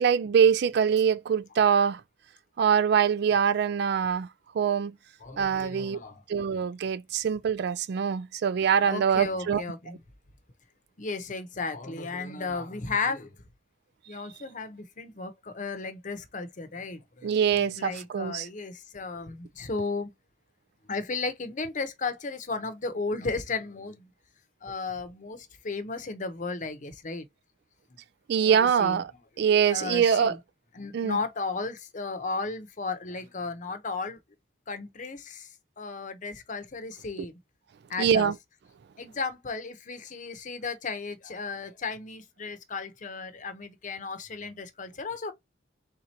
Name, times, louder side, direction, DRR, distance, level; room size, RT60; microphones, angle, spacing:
voice 1, 0.0-2.0 2.6-4.3 4.5-4.9 5.4-6.0 6.3-9.6 17.2-18.5 28.3-29.1 29.4-30.4 30.9-31.2 38.0-38.3, right 7 dB, 60° right, 0.3 m, -24 dB
voice 2, 5.2-6.2 8.8-10.0 11.0-13.3 14.1-20.1 20.9-24.0 24.6-27.3 27.9-28.0 28.5-29.2 29.7-30.4 30.7-34.2 34.7-35.5 35.8-37.3 37.9-38.3 39.0-45.3, left 4 dB, 45° left, 0.8 m, -34 dB
3.8 x 2.8 x 4.3 m
head